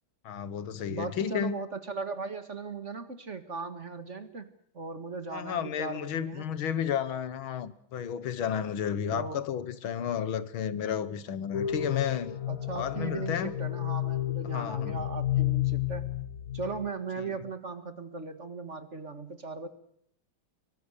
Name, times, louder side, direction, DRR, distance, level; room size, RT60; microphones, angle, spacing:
voice 1, 0.2-1.6 5.3-12.4 12.8-13.5 14.4-15.0 17.2-17.4, left 8 dB, 80° left, 2.0 m, -32 dB
voice 2, 0.9-4.5 4.7-6.5 9.1-9.5 12.5-16.1 16.5-19.7, right 4 dB, 35° right, 1.9 m, -38 dB
sound 1, 11.5-16.9, left 12 dB, 50° left, 1.4 m, -31 dB
24.5 x 23.0 x 6.6 m
omnidirectional pair, 2.2 m